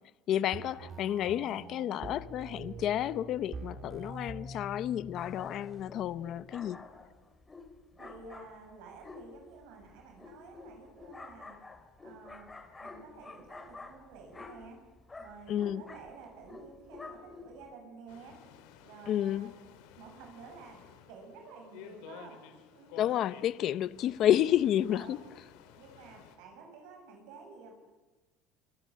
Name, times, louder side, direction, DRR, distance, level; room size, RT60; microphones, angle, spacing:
voice 1, 0.3-6.8 15.5-15.8 19.1-19.5 23.0-25.2, left 11 dB, 40° left, 0.8 m, -30 dB
sound 1, 0.5-6.5, right 2 dB, 20° right, 2.6 m, -45 dB
sound 2, 5.1-17.7, left 3 dB, 10° left, 2.6 m, -50 dB
voice 2, 8.0-11.6 12.0-12.5 12.8-14.8 15.2-18.4 18.8-19.6 20.0-20.8 21.1-22.4 22.7-23.3 24.9-25.3 25.8-27.8, right 4 dB, 70° right, 7.1 m, -51 dB
sound 3, 18.1-26.4, left 9 dB, 80° left, 3.9 m, -54 dB
27.5 x 25.5 x 7.6 m
cardioid pair, 165°, 0 cm